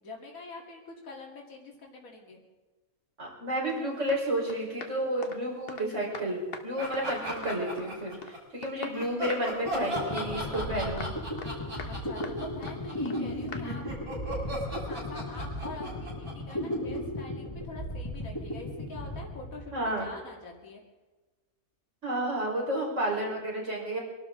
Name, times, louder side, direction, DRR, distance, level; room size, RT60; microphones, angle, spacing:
voice 1, 0.0-2.4 11.9-13.8 14.5-20.8, left 3 dB, 75° left, -1 dB, 2.7 m, -45 dB
voice 2, 3.2-11.1 19.7-20.1 22.0-24.0, right 1 dB, 55° right, -3 dB, 4.8 m, -31 dB
sound 1, 3.7-3.8 4.1-4.2 4.5-5.9 6.1-6.7 6.9-7.9 8.2-8.4 8.6-9.5 9.7-9.9 10.1-10.7 11.0-11.5 11.8-11.9 12.2-12.8 13.1-13.2 13.5-13.6, left 4 dB, 45° left, 1.3 m, -43 dB
sound 2, 6.8-8.4 8.9-17.2, equal, 85° right, 6.9 m, -37 dB
sound 3, 9.7-20.1, left 1 dB, 20° left, 1.8 m, -36 dB
25.5 x 12.5 x 3.7 m, 1.2 s
omnidirectional pair, 1.5 m